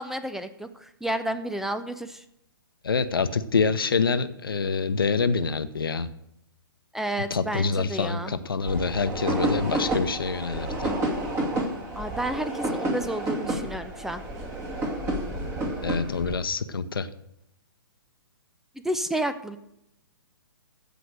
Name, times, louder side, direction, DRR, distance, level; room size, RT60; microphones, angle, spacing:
voice 1, 0.0-2.2 6.9-8.3 12.0-14.2 18.8-19.6, right 1 dB, 5° right, 11 dB, 0.5 m, -31 dB
voice 2, 2.8-6.1 7.3-10.9 15.8-17.1, left 5 dB, 75° left, 11 dB, 0.9 m, -26 dB
sound 1, 8.6-16.4, right 1 dB, 25° right, 2.3 m, -30 dB
15.5 x 5.2 x 6.4 m, 0.80 s
figure-of-eight pair, 125°, 12 cm